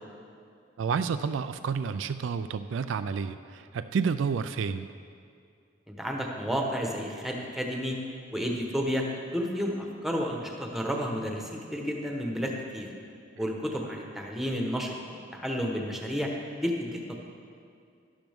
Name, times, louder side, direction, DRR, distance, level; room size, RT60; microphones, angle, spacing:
voice 1, 0.8-4.9, right 5 dB, 70° right, 11 dB, 0.3 m, -30 dB
voice 2, 5.9-8.0 8.3-9.0 9.3-12.9 13.4-16.3 16.6-17.3, equal, ahead, 0 dB, 1.1 m, -31 dB
12.0 x 11.5 x 3.6 m, 2.4 s
head